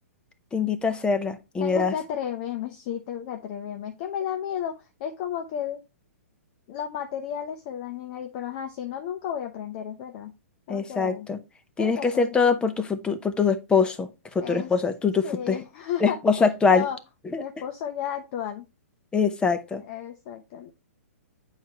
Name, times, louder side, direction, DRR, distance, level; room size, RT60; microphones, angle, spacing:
voice 1, 0.5-1.9 10.7-11.4 11.8-14.1 14.3-15.6 16.0-16.9 17.3-17.4 19.1-19.8, left 5 dB, 10° left, 0.7 m, -23 dB
voice 2, 1.6-4.7 5.0-5.8 6.7-10.3 10.7-11.3 11.8-12.3 14.4-14.7 15.2-16.2 16.7-17.0 17.4-18.6 19.9-20.7, left 9 dB, 45° left, 0.9 m, -33 dB
8.1 x 4.8 x 2.9 m
hypercardioid pair, 130°, 8 cm